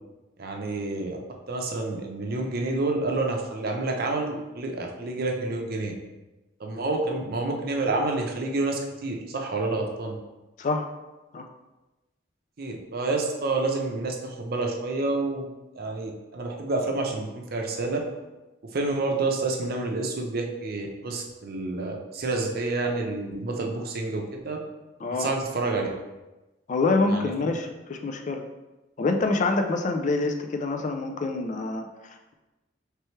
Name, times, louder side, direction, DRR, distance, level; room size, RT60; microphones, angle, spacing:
voice 1, 0.4-1.2 1.5-5.9 6.6-10.2 12.6-15.5 15.7-18.0 18.7-24.6 25.2-25.9 27.1-27.5, right 3 dB, 55° right, 1 dB, 0.6 m, -29 dB
voice 2, 26.7-28.4 29.0-32.3, left 3 dB, 40° left, 5 dB, 0.4 m, -26 dB
4.4 x 3.3 x 3.2 m, 1.1 s
head